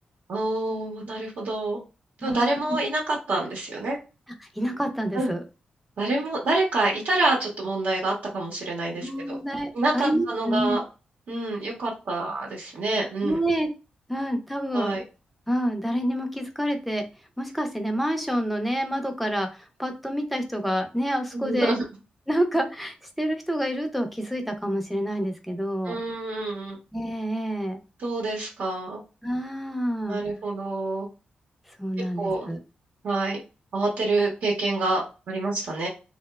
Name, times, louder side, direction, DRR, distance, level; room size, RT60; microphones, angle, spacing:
voice 1, 0.3-1.8 2.2-4.0 5.1-5.3 6.0-9.4 9.7-10.8 11.3-13.4 14.7-15.0 21.3-21.8 25.8-26.8 28.0-29.0 30.1-31.1 32.2-32.5 33.0-33.4 33.7-35.9, right 2 dB, 75° right, -2 dB, 0.8 m, -27 dB
voice 2, 2.2-2.6 4.6-5.4 9.0-10.8 13.2-13.7 14.1-15.0 15.5-17.0 17.4-21.7 22.3-26.0 26.9-27.8 29.2-30.2 31.8-32.6, equal, ahead, 5 dB, 0.5 m, -28 dB
2.8 x 2.0 x 2.2 m, 0.31 s
wide cardioid pair, 110°, 3 cm